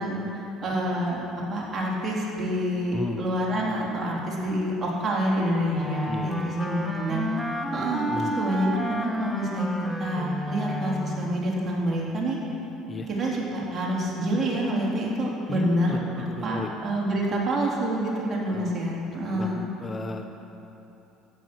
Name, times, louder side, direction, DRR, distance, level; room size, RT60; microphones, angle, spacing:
voice 1, 0.0-7.3 7.7-9.7 10.0-12.4 13.1-19.6, right 1 dB, 35° right, -4 dB, 3.6 m, -27 dB
voice 2, 2.9-3.4 6.0-6.6 8.1-8.4 12.9-13.1 15.5-16.7 18.5-18.7 19.3-20.3, left 2 dB, 25° left, 5 dB, 0.9 m, -34 dB
Wind instrument woodwind instrument, 5.7-11.4, left 1 dB, ahead, 1.4 m, -31 dB
13.5 x 9.2 x 6.3 m, 2.9 s
supercardioid pair, 80°, 0 cm